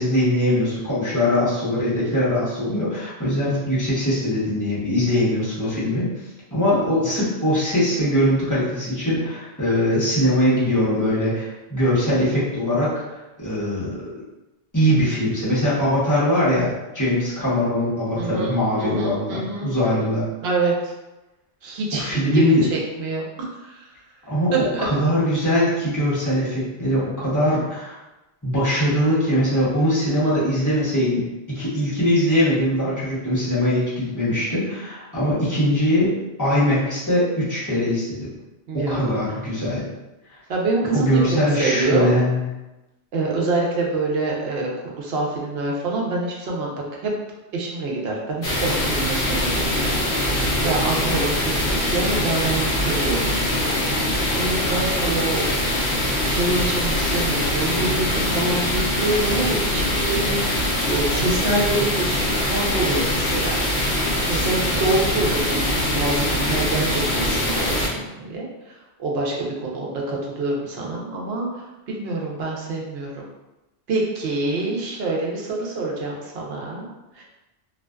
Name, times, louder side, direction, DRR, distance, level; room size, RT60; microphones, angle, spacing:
voice 1, 0.0-6.1 6.5-14.0 14.7-20.2 21.9-22.7 24.3-24.5 24.8-27.9 28.4-36.1 36.4-38.3 38.7-39.9 40.9-42.4, left 1 dB, 20° left, -9 dB, 0.8 m, -21 dB
voice 2, 18.1-20.1 20.4-20.9 21.6-23.9 24.5-24.9 35.2-35.4 38.7-39.2 40.5-42.1 43.1-47.1 47.5-53.7 54.0-55.4 56.2-64.0 64.3-73.3 73.9-76.9 77.1-77.2, right 2 dB, 65° right, -2 dB, 0.8 m, -26 dB
sound 1, 48.4-67.9, left 1 dB, 65° left, 0.7 m, -23 dB
2.4 x 2.3 x 2.2 m, 1.0 s
omnidirectional pair, 1.1 m